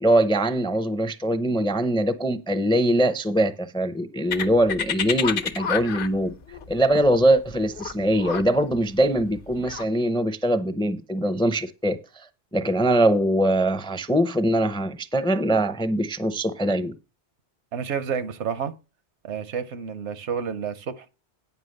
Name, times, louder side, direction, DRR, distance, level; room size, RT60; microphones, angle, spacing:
voice 1, 0.0-6.3 6.7-16.9, right 1 dB, 5° left, 0.4 m, -22 dB
sound 1, 4.3-9.8, left 7 dB, 55° left, 0.9 m, -30 dB
voice 2, 17.7-18.7 19.2-21.1, right 7 dB, 80° right, 1.1 m, -30 dB
9.6 x 5.7 x 6.5 m
omnidirectional pair, 1.1 m